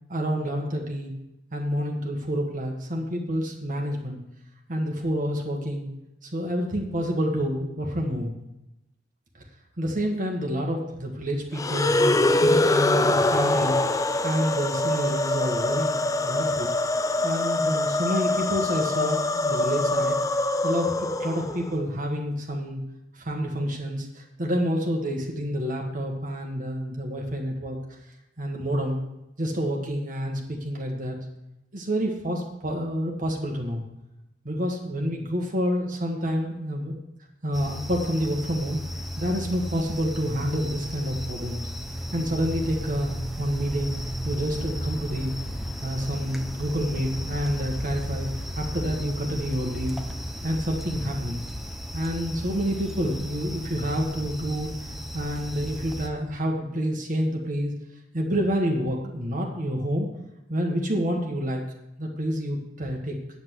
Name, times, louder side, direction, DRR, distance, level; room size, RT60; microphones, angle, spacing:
voice 1, 0.1-1.1 1.5-4.2 4.7-5.9 6.2-8.3 9.8-16.7 17.2-20.2 20.6-22.8 23.1-27.8 28.4-29.0 29.4-31.2 31.7-33.8 34.5-37.0 37.4-41.6 42.1-43.9 44.2-45.4 45.8-50.0 50.4-51.4 51.9-54.7 55.1-57.7 58.1-60.1 60.5-61.6 62.0-63.2, equal, 45° right, 0 dB, 1.6 m, -28 dB
sound 1, 11.5-21.8, left 2 dB, 20° left, 0.4 m, -24 dB
sound 2, 37.5-56.1, equal, ahead, 0.8 m, -34 dB
8.9 x 8.0 x 6.4 m, 0.89 s
head